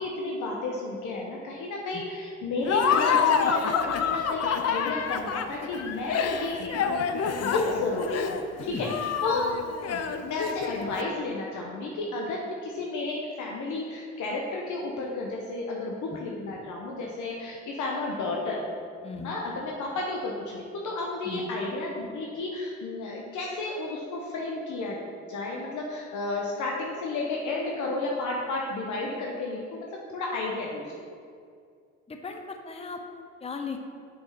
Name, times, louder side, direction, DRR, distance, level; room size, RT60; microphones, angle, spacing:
voice 1, 0.0-6.6 7.0-8.9 9.2-9.5 10.2-18.6 19.2-25.0 25.3-30.9, left 2 dB, 75° left, -1 dB, 1.0 m, -32 dB
Laughter, 2.6-10.9, left 6 dB, 55° left, 0.6 m, -27 dB
voice 2, 19.0-19.3 21.2-21.5 32.1-33.8, left 4 dB, 20° left, 5 dB, 0.7 m, -37 dB
6.3 x 6.0 x 5.7 m, 2.3 s
cardioid pair, 90°, 30 cm